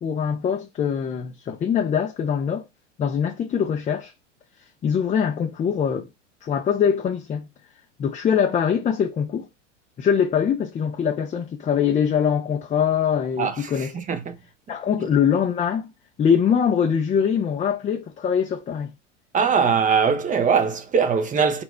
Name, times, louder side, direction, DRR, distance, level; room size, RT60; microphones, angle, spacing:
voice 1, 0.0-2.6 3.0-4.1 4.8-6.1 6.4-7.5 8.0-9.5 10.0-13.9 14.7-15.9 16.2-18.9, left 7 dB, 20° left, 0.5 m, -23 dB
voice 2, 13.4-14.4 19.3-21.6, right 6 dB, 20° right, 0.8 m, -21 dB
4.2 x 2.2 x 4.3 m
hypercardioid pair, 95°, 37 cm